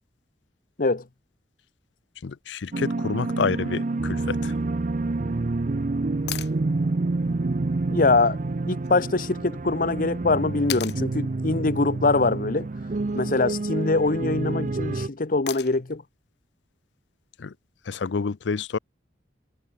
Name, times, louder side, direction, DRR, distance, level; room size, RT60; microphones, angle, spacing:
voice 1, 2.2-4.5 17.4-17.5 17.9-18.8, left 5 dB, 80° left, 0.5 m, -28 dB
sound 1, 2.7-15.1, right 3 dB, 45° right, 0.6 m, -28 dB
sound 2, 6.3-6.6 8.8-8.9 10.7-11.0 13.0-13.5 15.5-15.9 18.1-18.2, left 11 dB, 65° left, 1.3 m, -35 dB
voice 2, 7.9-8.4 8.7-12.7 13.1-16.0, left 3 dB, 50° left, 0.9 m, -23 dB
head